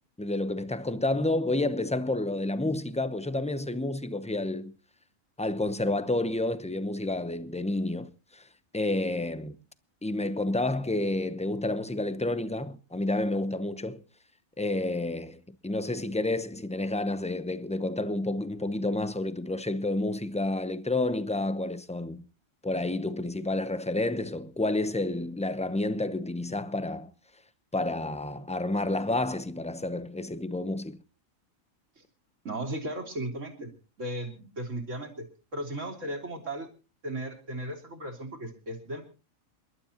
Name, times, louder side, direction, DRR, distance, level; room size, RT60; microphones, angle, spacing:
voice 1, 0.2-4.7 5.4-8.4 8.7-9.6 10.0-14.0 14.6-22.2 22.6-27.1 27.7-31.0, left 2 dB, 5° left, 0.5 m, -30 dB
voice 2, 32.5-35.3 35.5-36.7 37.0-39.0, right 1 dB, 65° right, 3.4 m, -36 dB
27.5 x 12.0 x 2.9 m
omnidirectional pair, 1.4 m